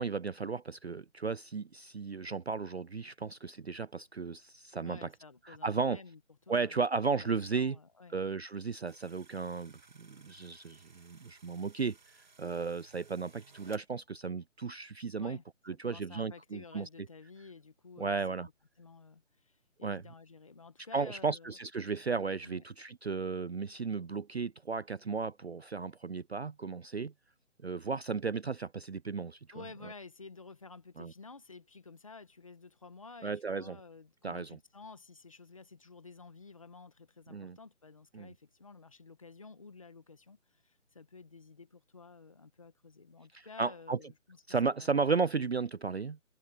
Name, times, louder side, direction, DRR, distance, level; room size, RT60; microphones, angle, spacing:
voice 1, 0.0-5.1 5.5-6.0 6.5-7.8 8.1-15.4 15.7-16.9 18.0-18.5 19.8-20.0 20.9-27.1 27.6-29.4 31.0-31.1 33.2-33.8 34.2-34.6 37.3-37.6 38.1-38.3 43.6-44.0 44.5-46.2, right 5 dB, 55° right, 0.4 m, -34 dB
voice 2, 4.8-8.2 15.2-18.4 18.8-21.6 22.4-22.6 29.5-45.0, left 4 dB, 25° left, 1.8 m, -52 dB
sound 1, 8.9-13.9, right 4 dB, 35° right, 2.2 m, -60 dB
hypercardioid pair, 180°, 39 cm